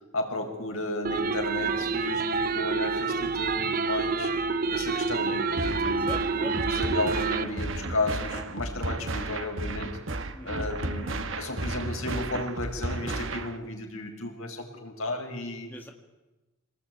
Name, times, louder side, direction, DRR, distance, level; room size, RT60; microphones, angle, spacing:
voice 1, 0.1-4.3 4.7-9.9 10.4-11.0 11.4-15.7, left 2 dB, 80° left, 2 dB, 5.5 m, -33 dB
sound 1, 1.0-7.4, right 4 dB, 40° right, 0.8 m, -28 dB
voice 2, 1.1-1.5 5.9-6.5 10.3-11.2 15.7-15.9, left 1 dB, 10° left, 2 dB, 1.9 m, -43 dB
sound 2, 5.6-13.6, right 2 dB, 65° right, 1.4 m, -33 dB
26.0 x 19.0 x 9.4 m, 1.1 s
head